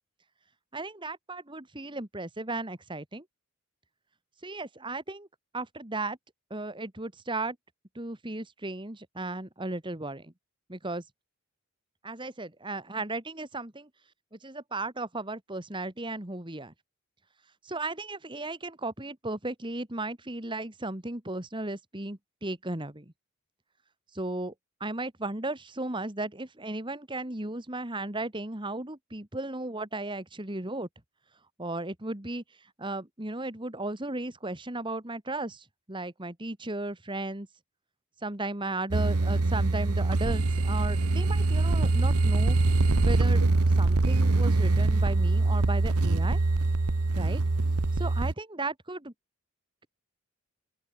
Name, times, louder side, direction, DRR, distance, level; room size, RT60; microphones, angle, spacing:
voice 1, 0.7-3.3 4.4-5.3 5.5-6.2 6.5-7.6 8.0-10.3 10.7-11.0 12.0-13.9 14.3-16.7 17.6-23.1 24.1-24.5 24.8-30.9 31.6-32.4 32.8-37.5 38.2-42.6 43.0-43.4 43.8-46.4 47.1-47.4 48.0-49.1, right 2 dB, 20° right, 1.8 m, -35 dB
sound 1, 38.9-48.3, right 2 dB, 90° right, 1.0 m, -24 dB
open air
head